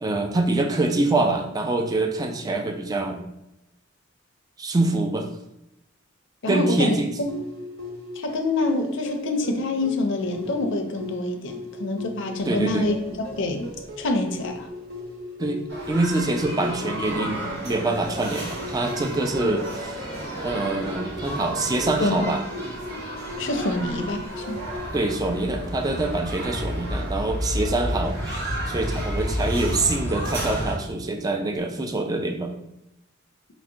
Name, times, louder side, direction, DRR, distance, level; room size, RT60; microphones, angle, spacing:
voice 1, 0.0-3.2 4.6-5.3 6.5-7.1 12.4-12.9 15.4-20.0 20.4-22.4 24.9-28.4 28.7-32.5, right 2 dB, 20° right, 4 dB, 0.3 m, -25 dB
voice 2, 6.4-7.3 8.2-13.0 13.3-13.7 14.0-14.7 19.4-19.6 22.0-22.2 23.4-24.6, left 2 dB, 65° left, 4 dB, 0.6 m, -26 dB
sound 1, 7.3-24.9, left 1 dB, 90° right, 1.0 m, -38 dB
sound 2, 12.3-15.1 16.1-16.2 16.8-25.0 25.4-31.8, equal, 40° right, 1.2 m, -44 dB
sound 3, 15.7-30.8, equal, 55° right, 1.3 m, -32 dB
4.7 x 2.1 x 3.7 m, 0.86 s
head